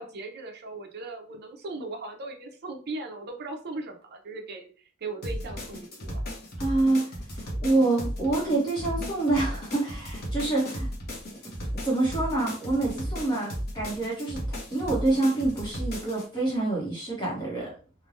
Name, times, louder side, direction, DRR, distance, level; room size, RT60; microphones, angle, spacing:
voice 1, 0.0-4.7 5.0-6.2, right 2 dB, 50° right, 3 dB, 0.6 m, -38 dB
sound 1, 5.2-16.3, equal, 50° left, 0.9 m, -35 dB
voice 2, 6.6-7.1 7.6-10.9 11.8-17.7, right 2 dB, 20° left, -5 dB, 0.9 m, -26 dB
3.2 x 2.2 x 2.5 m, 0.38 s
head